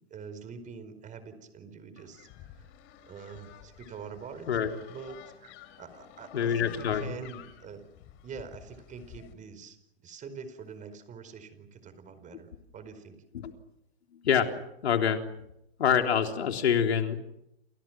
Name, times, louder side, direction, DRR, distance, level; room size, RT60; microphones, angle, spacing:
voice 1, 0.1-2.7 3.1-4.5 4.9-7.8 8.2-13.2, right 5 dB, 25° right, 11 dB, 4.8 m, -45 dB
sound 1, 2.0-9.3, left 11 dB, 40° left, 4.3 m, -51 dB
voice 2, 6.3-7.2 13.3-13.5 14.1-14.5 14.8-15.2 15.8-17.2, left 8 dB, 80° left, 5 dB, 3.6 m, -26 dB
29.5 x 29.0 x 6.1 m, 0.81 s
hypercardioid pair, 125°, 32 cm